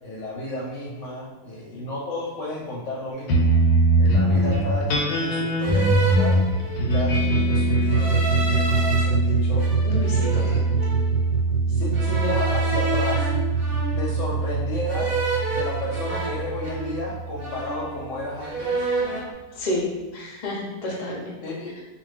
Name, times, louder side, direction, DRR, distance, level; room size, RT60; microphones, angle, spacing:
voice 1, 0.0-3.5 4.0-6.4 6.8-9.6 10.3-10.6 11.7-13.3 14.0-15.2 15.5-18.9 21.4-21.7, left 2 dB, 65° left, -4 dB, 0.9 m, -32 dB
sound 1, 3.2-3.4 4.3-4.8 5.6-7.0 7.8-9.0 9.6-11.1 11.9-14.3 14.9-17.1 17.4-18.1 18.4-19.3, right 3 dB, 55° right, 0.6 m, -30 dB
sound 2, 3.3-18.0, right 2 dB, 90° left, 1.1 m, -22 dB
voice 2, 9.8-10.9 19.5-19.9 20.1-21.4, left 1 dB, 40° left, -4 dB, 0.6 m, -30 dB
2.5 x 2.4 x 3.2 m, 1.3 s
omnidirectional pair, 1.6 m